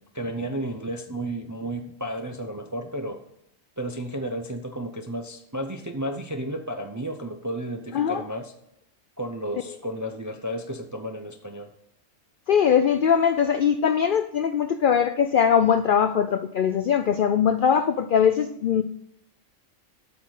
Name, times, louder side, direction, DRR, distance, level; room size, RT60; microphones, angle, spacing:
voice 1, 0.0-3.2 3.8-8.5 9.2-11.7, right 1 dB, 25° right, 4 dB, 0.3 m, -32 dB
voice 2, 12.5-18.8, left 7 dB, 70° left, 10 dB, 0.5 m, -21 dB
8.3 x 6.0 x 6.3 m, 0.78 s
omnidirectional pair, 1.4 m